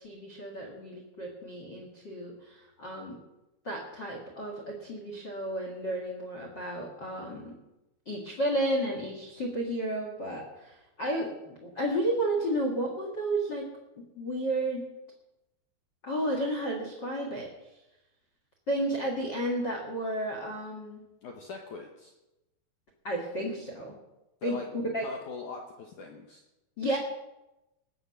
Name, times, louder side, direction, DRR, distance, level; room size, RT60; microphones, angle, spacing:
voice 1, 0.0-3.2 3.6-7.5 8.0-13.6 14.1-14.8 16.0-17.5 18.7-21.0 23.0-23.9 24.4-25.0 26.8-27.0, right 1 dB, 60° left, 1 dB, 1.1 m, -32 dB
voice 2, 21.2-22.1 24.4-24.7 25.0-26.4, left 4 dB, 90° left, 2 dB, 1.7 m, -41 dB
19.5 x 7.2 x 5.8 m, 0.96 s
omnidirectional pair, 5.1 m